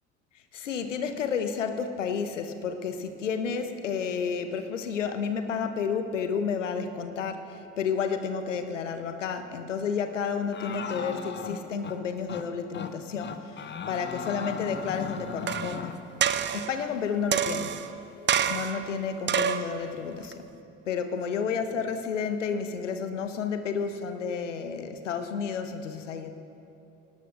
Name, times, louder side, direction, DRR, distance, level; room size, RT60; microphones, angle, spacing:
voice 1, 0.5-16.0 16.5-17.8 18.5-20.4 20.9-26.3, left 6 dB, 80° left, 8 dB, 0.9 m, -31 dB
sound 1, 10.5-12.0 12.3-12.5 12.7-12.9 13.2-16.0, left 6 dB, 30° left, 1.0 m, -37 dB
sound 2, 15.5-15.8 16.2-16.7 17.3-17.9 18.3-18.8 19.3-19.7 20.3-20.4, right 8 dB, 30° right, 0.7 m, -27 dB
24.0 x 18.5 x 2.6 m, 2.8 s
figure-of-eight pair, 55°, 36 cm